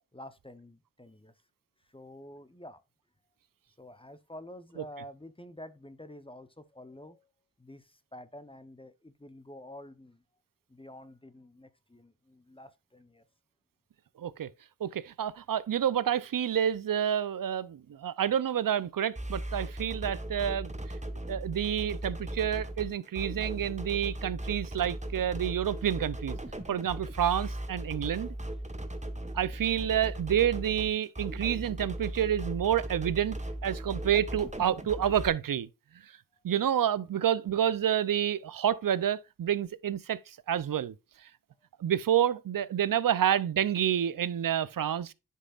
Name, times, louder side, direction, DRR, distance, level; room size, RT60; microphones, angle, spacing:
voice 1, 0.1-1.3 1.9-2.8 3.8-7.3 7.6-10.2 10.7-13.2, left 1 dB, 15° left, 0.8 m, -48 dB
voice 2, 14.2-14.5 14.8-20.7 21.3-26.4 26.7-28.3 29.3-33.4 33.6-35.7 36.4-40.9 41.8-45.1, right 10 dB, 90° right, 0.5 m, -29 dB
sound 1, 19.1-35.3, right 1 dB, 20° right, 1.1 m, -38 dB
9.9 x 5.5 x 2.4 m
cardioid pair, 40°, 32 cm